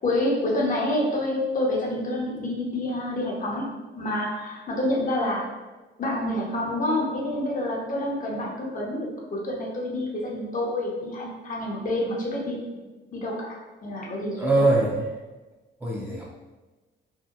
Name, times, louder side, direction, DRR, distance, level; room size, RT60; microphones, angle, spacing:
voice 1, 0.0-3.6 4.0-5.4 6.0-12.6 13.1-13.5 13.8-14.6, left 1 dB, 40° left, -3 dB, 0.7 m, -28 dB
voice 2, 14.3-15.0 15.8-16.2, right 2 dB, 10° right, -5 dB, 0.5 m, -22 dB
2.7 x 2.1 x 2.3 m, 1.2 s
cardioid pair, 90°, 20 cm